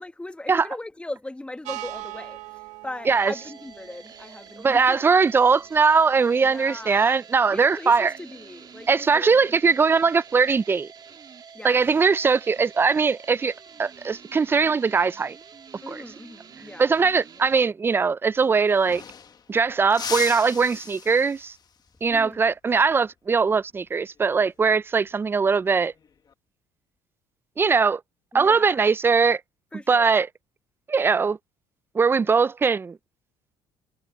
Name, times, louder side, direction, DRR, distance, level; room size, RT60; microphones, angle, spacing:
voice 1, 0.0-5.1 6.4-7.1 7.5-9.6 11.5-11.8 15.8-17.1 22.1-22.5 28.3-28.8 29.7-30.2 32.2-32.3, left 2 dB, 10° left, 1.1 m, -39 dB
sound 1, 1.6-7.0, right 18 dB, 80° right, 1.5 m, -42 dB
sound 2, 3.1-17.7, right 6 dB, 35° right, 1.7 m, -47 dB
voice 2, 4.6-8.1 8.9-10.9 11.6-13.5 13.8-15.4 15.9-16.0 16.8-19.0 19.5-21.5 22.0-25.9 27.6-28.0 28.3-29.4 29.9-30.3 30.9-31.4 31.9-33.0, right 5 dB, 20° right, 0.3 m, -20 dB
sound 3, 18.3-18.4 18.6-19.5 19.9-21.7 24.2-24.5 25.9-26.3, left 6 dB, 35° left, 1.4 m, -37 dB
cardioid pair, 110°, 12 cm